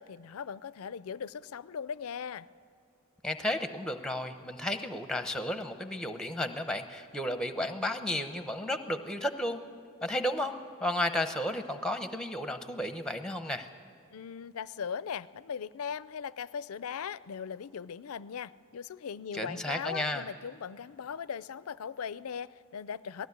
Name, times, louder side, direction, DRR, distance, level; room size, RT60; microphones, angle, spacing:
voice 1, 0.0-2.5 14.1-23.3, left 7 dB, 80° left, 18 dB, 0.5 m, -39 dB
voice 2, 3.2-9.6 10.0-13.7 19.3-20.2, left 1 dB, 5° left, 8 dB, 0.8 m, -33 dB
19.5 x 15.5 x 9.5 m, 2.3 s
head